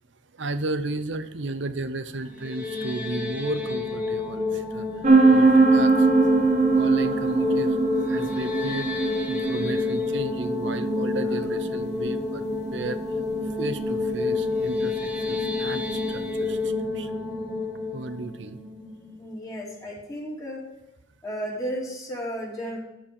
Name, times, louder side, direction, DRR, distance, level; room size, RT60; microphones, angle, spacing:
voice 1, 0.3-6.3 6.7-12.4 12.7-13.0 13.6-17.1 17.9-18.6, right 2 dB, 65° right, 11 dB, 0.8 m, -34 dB
sound 1, 2.3-19.4, left 3 dB, 5° right, 1.3 m, -29 dB
sound 2, 5.0-16.5, right 3 dB, 40° right, 1.1 m, -23 dB
voice 2, 19.2-20.7 21.2-22.8, equal, 20° left, -3 dB, 2.6 m, -33 dB
13.0 x 4.6 x 6.6 m, 0.96 s
head